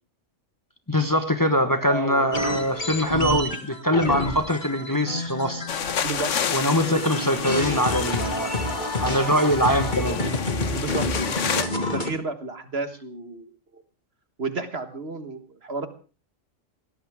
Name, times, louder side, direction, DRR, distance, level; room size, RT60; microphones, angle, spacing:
voice 1, 0.9-5.6 6.5-10.2, equal, 15° left, 8 dB, 1.3 m, -23 dB
voice 2, 1.8-2.3 6.0-6.3 6.7-6.9 10.7-13.8 14.4-15.9, right 3 dB, 50° right, 9 dB, 1.8 m, -32 dB
sound 1, 2.3-6.4 6.7-12.1, left 2 dB, 35° left, 2.2 m, -28 dB
sound 2, 5.7-11.6, left 7 dB, 75° left, 1.3 m, -30 dB
21.0 x 18.0 x 3.6 m, 0.36 s
omnidirectional pair, 1.3 m